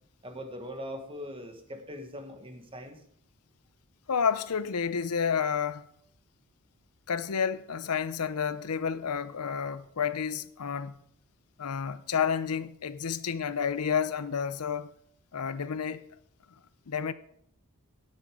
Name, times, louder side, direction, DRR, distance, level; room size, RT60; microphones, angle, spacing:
voice 1, 0.2-3.0, equal, 25° right, 1.4 m, -41 dB
voice 2, 4.1-5.8 7.1-11.0 11.6-14.9 15.3-16.1 16.9-17.1, left 6 dB, 85° left, 0.6 m, -30 dB
17.5 x 6.4 x 4.9 m
head